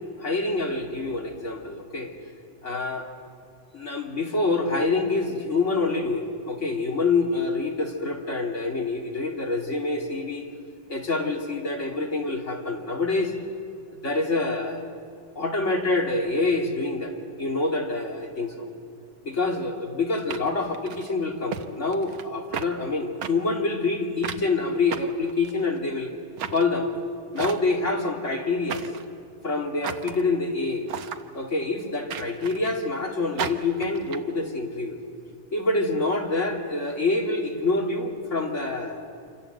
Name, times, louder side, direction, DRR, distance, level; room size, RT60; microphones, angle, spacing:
voice 1, 0.2-2.1 2.6-3.1 3.7-10.4 10.9-13.3 14.0-14.8 15.4-18.7 19.2-26.1 26.5-26.9 27.3-28.9 29.4-35.0 35.5-39.0, left 3 dB, 25° left, 1 dB, 2.5 m, -26 dB
sound 1, 19.3-19.5 20.3-21.1 21.5-21.7 21.9-22.3 22.5-22.7 23.2-23.3 24.2-24.5 24.9-25.8 26.4-26.6 27.4-27.9 28.7-29.1 29.8-30.2 30.9-31.2 32.1-32.8 33.4-34.2, right 8 dB, 65° right, 1.3 m, -34 dB
27.5 x 25.5 x 7.9 m, 2.3 s
omnidirectional pair, 3.5 m